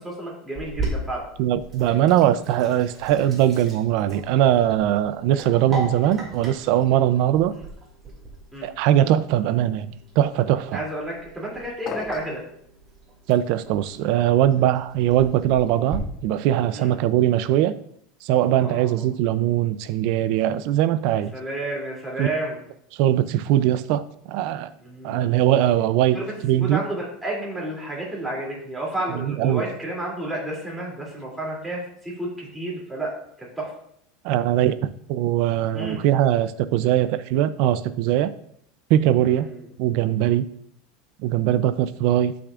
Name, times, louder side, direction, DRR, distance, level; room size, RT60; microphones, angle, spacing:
voice 1, 0.0-1.2 8.5-8.7 10.7-12.4 16.7-16.9 18.5-19.0 21.3-22.6 24.8-25.3 26.1-33.1 33.6-33.7 35.7-36.0 39.2-39.6, right 1 dB, 5° right, -4 dB, 2.8 m, -31 dB
Sink (filling or washing), 0.6-16.0, right 2 dB, 20° right, 2.4 m, -38 dB
voice 2, 1.4-7.5 8.6-10.8 13.3-17.8 18.2-21.3 22.2-22.3 23.0-24.7 25.0-26.8 29.1-29.6 34.2-34.8 35.1-38.3 38.9-39.5 39.8-40.4 41.2-42.3, right 12 dB, 55° right, 14 dB, 0.5 m, -21 dB
sound 1, 11.9-12.5, left 6 dB, 30° left, 0.5 m, -34 dB
12.0 x 6.0 x 2.5 m, 0.69 s
supercardioid pair, 155°, 0 cm